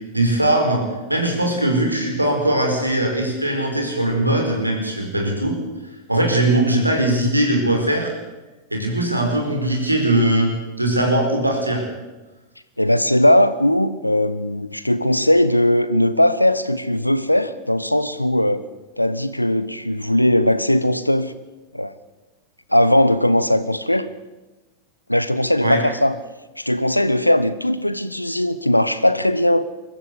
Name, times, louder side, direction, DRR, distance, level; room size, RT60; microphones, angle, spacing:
voice 1, 0.1-0.8 1.1-5.6 6.1-8.1 8.7-11.8 25.6-25.8, right 1 dB, 85° right, 1 dB, 4.9 m, -20 dB
voice 2, 12.8-18.6 19.0-21.3 21.7-21.9 22.7-24.1 25.1-26.1 26.6-29.6, left 1 dB, 90° left, 14 dB, 1.0 m, -18 dB
22.5 x 14.5 x 8.3 m, 1.1 s
figure-of-eight pair, 90°, 0 cm